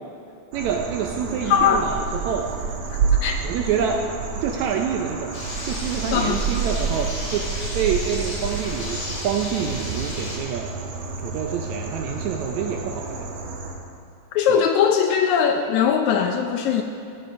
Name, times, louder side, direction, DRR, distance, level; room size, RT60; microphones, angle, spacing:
sound 1, 0.5-13.7, right 5 dB, 60° right, 2.1 m, -29 dB
voice 1, 0.5-2.5 3.4-4.0 4.4-7.5 7.7-10.7 11.2-13.3 14.5-14.6, right 7 dB, 80° right, 3 dB, 1.7 m, -27 dB
voice 2, 1.5-1.9 3.2-3.4 6.1-6.4 14.3-16.8, left 7 dB, 75° left, 4 dB, 1.8 m, -20 dB
sound 2, 5.3-10.4, left 2 dB, 50° left, 3.7 m, -33 dB
16.5 x 8.1 x 5.3 m, 2.5 s
omnidirectional pair, 3.8 m